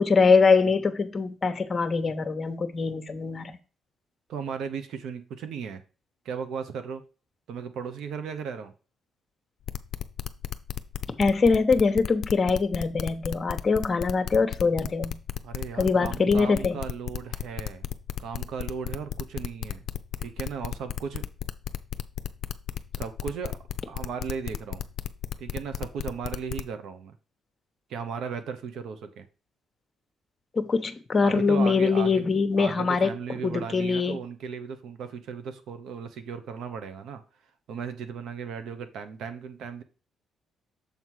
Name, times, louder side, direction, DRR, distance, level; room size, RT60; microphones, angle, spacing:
voice 1, 0.0-3.5 11.2-15.2 15.8-16.8 30.5-33.1 33.4-34.2, left 4 dB, 35° left, 1.0 m, -23 dB
voice 2, 4.3-5.8 6.2-7.0 7.5-8.7 15.4-17.9 18.2-19.8 20.2-21.2 22.9-23.6 23.9-24.9 25.4-27.1 27.9-29.3 31.2-32.3 32.6-37.2 37.7-39.8, right 6 dB, 75° right, 1.0 m, -36 dB
sound 1, 9.7-26.6, left 10 dB, 70° left, 0.5 m, -33 dB
7.0 x 4.0 x 4.7 m
cardioid pair, 90°, 0 cm